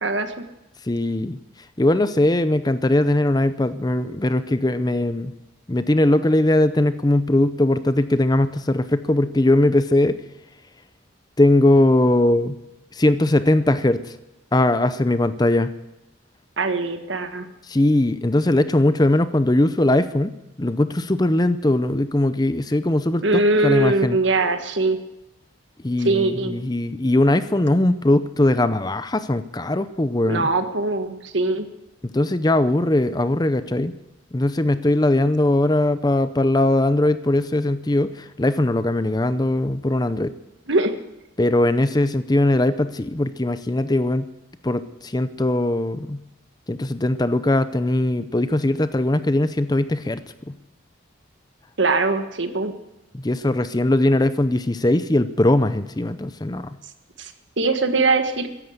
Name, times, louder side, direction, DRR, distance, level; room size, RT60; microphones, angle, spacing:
voice 1, 0.0-0.3 16.6-17.5 23.2-25.0 26.0-26.6 30.3-31.7 40.7-40.9 51.8-52.7 57.2-58.6, right 2 dB, 65° right, 8 dB, 1.6 m, -21 dB
voice 2, 0.8-1.4 1.8-5.3 5.7-10.2 11.4-12.6 12.9-14.1 14.5-15.7 17.7-20.3 20.6-24.2 25.8-30.5 32.1-33.9 34.3-40.3 41.4-44.3 44.6-46.2 46.7-50.6 53.1-56.7, left 1 dB, 20° left, 12 dB, 0.6 m, -20 dB
15.0 x 11.0 x 7.9 m, 0.94 s
head